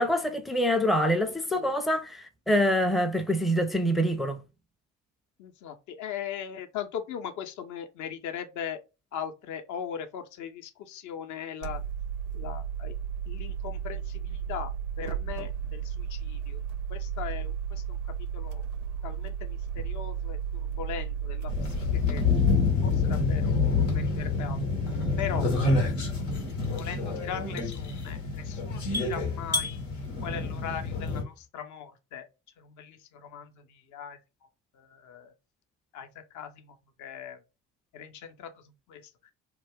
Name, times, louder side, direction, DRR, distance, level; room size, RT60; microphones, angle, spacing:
voice 1, 0.0-4.4, equal, ahead, 0.5 m, -25 dB
voice 2, 1.2-1.7 5.4-8.8 9.1-11.8 12.3-12.9 13.3-14.7 15.0-16.6 16.9-18.0 18.3-18.6 19.0-22.2 22.8-24.6 25.2-25.5 26.7-29.8 30.2-32.3 32.6-34.2 34.7-35.3 35.9-37.4 37.9-39.1, left 8 dB, 50° left, 0.7 m, -39 dB
sound 1, 11.6-22.6, right 8 dB, 70° right, 0.5 m, -34 dB
sound 2, 21.5-31.2, left 4 dB, 85° left, 0.9 m, -27 dB
sound 3, 24.8-31.5, left 2 dB, 30° left, 1.0 m, -39 dB
2.4 x 2.2 x 3.5 m
figure-of-eight pair, 50°, 37 cm